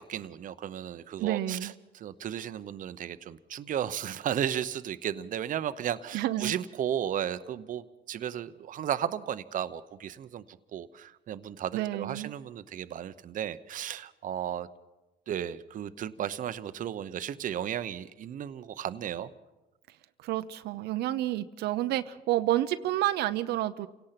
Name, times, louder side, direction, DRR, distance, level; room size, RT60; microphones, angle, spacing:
voice 1, 0.0-14.7 15.3-19.3, right 10 dB, 50° right, 12 dB, 0.9 m, -34 dB
voice 2, 1.2-1.7 6.1-6.5 11.7-12.3 20.2-23.9, right 14 dB, 80° right, 9 dB, 0.8 m, -29 dB
29.0 x 17.5 x 5.9 m, 1.1 s
cardioid pair, 110°, 17 cm